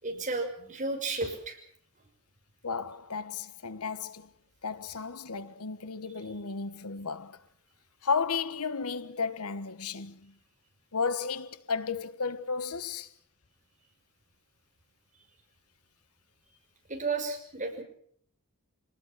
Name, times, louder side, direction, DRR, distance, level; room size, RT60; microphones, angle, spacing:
voice 1, 0.0-1.6 16.9-17.8, right 3 dB, 35° right, 5.7 m, -33 dB
voice 2, 2.6-4.3 4.6-7.4 8.0-10.3 10.9-13.1, left 5 dB, 90° left, 1.3 m, -33 dB
25.5 x 19.5 x 7.5 m
head